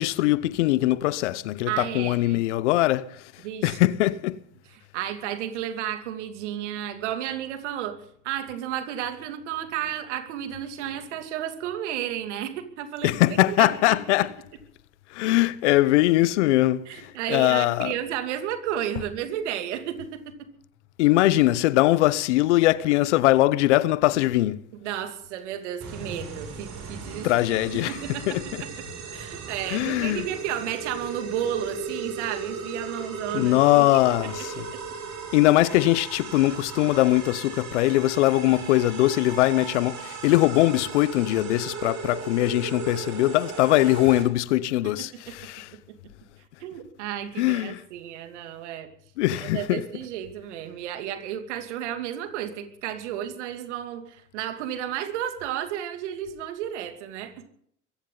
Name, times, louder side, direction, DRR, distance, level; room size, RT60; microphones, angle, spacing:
voice 1, 0.0-4.4 13.0-14.3 15.1-17.9 21.0-24.7 27.2-28.6 29.7-30.3 33.3-34.7 35.3-45.7 47.4-47.8 49.2-49.9, left 16 dB, 85° left, 0.9 m, -22 dB
voice 2, 1.7-2.4 3.4-3.8 4.9-8.0 8.2-14.0 16.9-20.5 24.8-27.3 27.9-28.7 29.1-33.9 34.4-34.8 45.3-46.0 46.6-48.9 49.4-57.5, right 10 dB, 85° right, 2.7 m, -32 dB
sound 1, 25.8-44.2, right 5 dB, 55° right, 6.9 m, -37 dB
23.0 x 15.5 x 4.0 m
hypercardioid pair, 60°, 34 cm